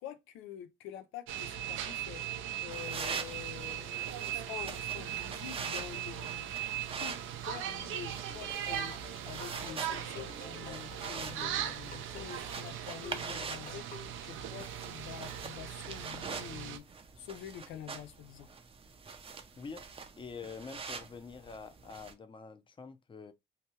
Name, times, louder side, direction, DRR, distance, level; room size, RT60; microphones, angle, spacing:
voice 1, 0.0-6.5 7.0-16.9 17.2-18.5, left 10 dB, 90° left, 0.4 m, -47 dB
sound 1, 1.3-16.8, right 10 dB, 85° right, 0.5 m, -39 dB
sound 2, 2.7-22.1, right 5 dB, 30° right, 0.5 m, -45 dB
sound 3, 8.3-14.2, left 4 dB, 45° left, 1.3 m, -51 dB
voice 2, 20.2-23.3, left 5 dB, 25° left, 0.5 m, -46 dB
2.8 x 2.2 x 3.0 m
cardioid pair, 90°, 20 cm